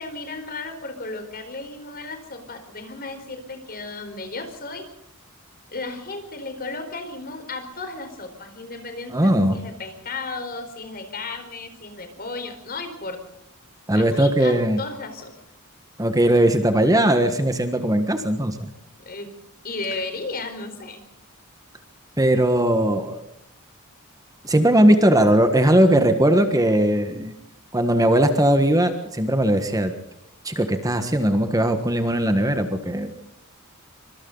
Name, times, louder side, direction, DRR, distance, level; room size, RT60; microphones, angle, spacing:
voice 1, 0.0-4.9 5.7-13.2 13.9-15.3 19.0-19.3 19.6-21.0, left 3 dB, 45° left, 7 dB, 4.4 m, -34 dB
voice 2, 9.1-9.5 13.9-14.8 16.0-18.7 22.2-23.2 24.4-27.3 27.7-29.9 30.4-33.2, right 1 dB, 15° right, 8 dB, 1.5 m, -19 dB
26.0 x 25.0 x 4.0 m, 0.79 s
head